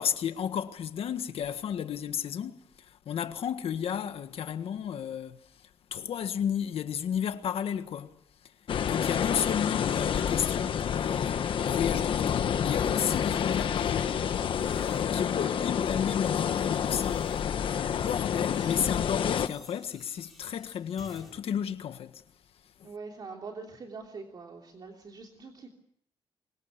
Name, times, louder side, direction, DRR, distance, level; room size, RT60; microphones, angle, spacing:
voice 1, 0.0-5.4 5.9-8.1 8.8-11.4 11.6-14.3 14.9-22.2 22.8-22.9, left 8 dB, 85° left, 1.7 m, -33 dB
sound 1, 8.7-19.5, left 8 dB, 65° left, 1.2 m, -28 dB
sound 2, 13.0-13.7 14.3-15.5 16.2-21.4, left 1 dB, ahead, 5.9 m, -57 dB
voice 2, 15.2-15.5 22.8-25.7, right 4 dB, 45° right, 3.2 m, -43 dB
26.5 x 23.5 x 6.8 m
wide cardioid pair, 165°, 10 cm